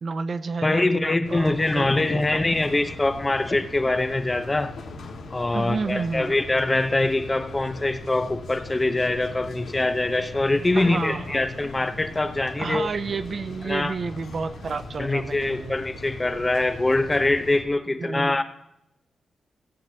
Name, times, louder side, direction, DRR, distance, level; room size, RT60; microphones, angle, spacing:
voice 1, 0.0-2.4 5.5-6.3 10.7-11.4 12.6-15.7 18.0-18.4, right 4 dB, 50° right, 13 dB, 0.5 m, -31 dB
voice 2, 0.6-4.7 5.3-12.9 13.6-13.9 15.0-18.4, left 2 dB, 20° left, 9 dB, 0.8 m, -23 dB
sound 1, 1.2-17.6, left 2 dB, 85° left, 1.7 m, -39 dB
16.0 x 8.0 x 2.9 m, 0.84 s
wide cardioid pair, 105°, 0 cm